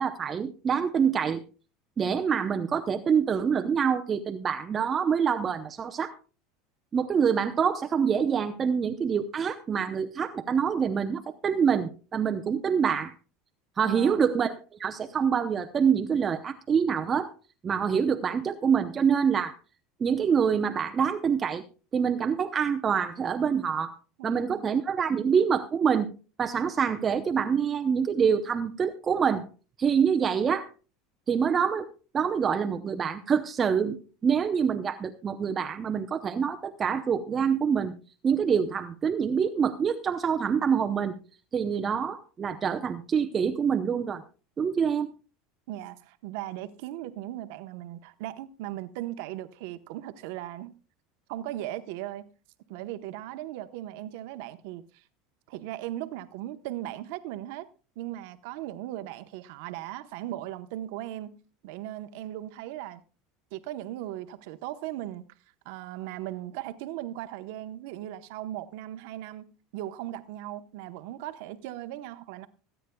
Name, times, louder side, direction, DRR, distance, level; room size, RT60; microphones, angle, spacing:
voice 1, 0.0-1.4 2.0-6.1 6.9-13.1 13.8-14.5 14.8-17.3 17.6-19.5 20.0-21.6 21.9-23.9 24.2-26.1 26.4-29.5 29.8-30.7 31.3-31.9 32.1-37.9 38.2-41.2 41.5-44.2 44.6-45.1, right 7 dB, 25° right, 0.7 m, -26 dB
voice 2, 13.8-14.2 24.2-24.7 45.7-50.7 51.3-52.2 52.7-55.0 55.5-57.7 58.0-61.3 61.6-63.0 63.5-65.3 65.6-69.5 69.7-72.5, right 14 dB, 70° right, 1.0 m, -38 dB
25.0 x 9.2 x 2.3 m
supercardioid pair, 125°, 0 cm